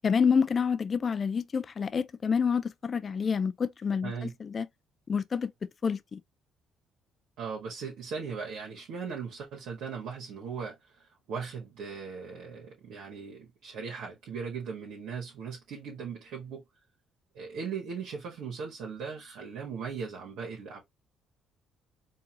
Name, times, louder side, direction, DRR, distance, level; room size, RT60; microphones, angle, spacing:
voice 1, 0.0-4.1 4.4-4.7 5.1-5.5 5.8-6.2, left 6 dB, 40° left, 0.4 m, -28 dB
voice 2, 7.4-16.6 17.3-20.8, right 6 dB, 80° right, 1.5 m, -38 dB
4.6 x 2.6 x 2.9 m
cardioid pair, 100°, 0 cm